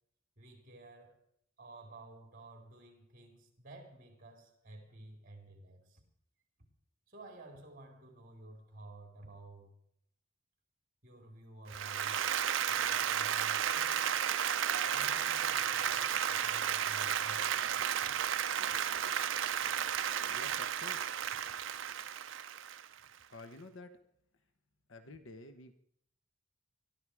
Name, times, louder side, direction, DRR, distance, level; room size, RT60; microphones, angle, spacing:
voice 1, 0.4-1.2 1.6-6.0 7.1-9.8 11.0-12.3 12.7-14.2 14.9-18.2, right 2 dB, 45° right, 4.6 m, -53 dB
Applause, 11.7-23.0, right 9 dB, 70° right, 0.7 m, -33 dB
voice 2, 20.3-21.3 23.3-24.0 24.9-25.7, left 2 dB, 85° left, 1.2 m, -51 dB
22.5 x 13.0 x 4.9 m
head